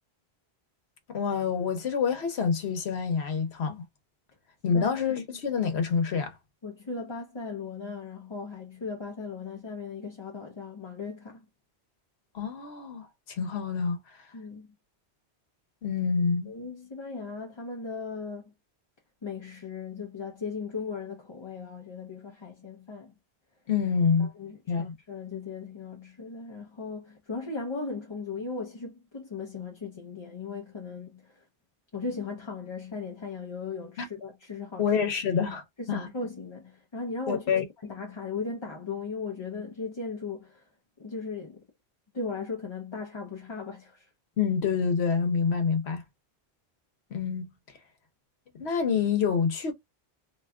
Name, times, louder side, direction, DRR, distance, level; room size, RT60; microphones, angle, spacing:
voice 1, 1.1-3.8 4.6-6.3 12.3-14.0 15.8-16.5 23.7-24.3 24.7-24.9 34.0-34.1 34.8-36.1 37.3-37.6 44.4-46.0 47.1-47.5 48.6-49.7, left 6 dB, 70° left, 1.1 m, -27 dB
voice 2, 6.6-11.5 14.3-14.7 16.5-18.5 19.2-23.1 24.2-31.5 31.9-34.9 35.8-37.5 37.8-40.7 41.0-41.6 42.1-44.1, left 4 dB, 35° left, 0.5 m, -37 dB
2.7 x 2.3 x 3.6 m
omnidirectional pair, 1.1 m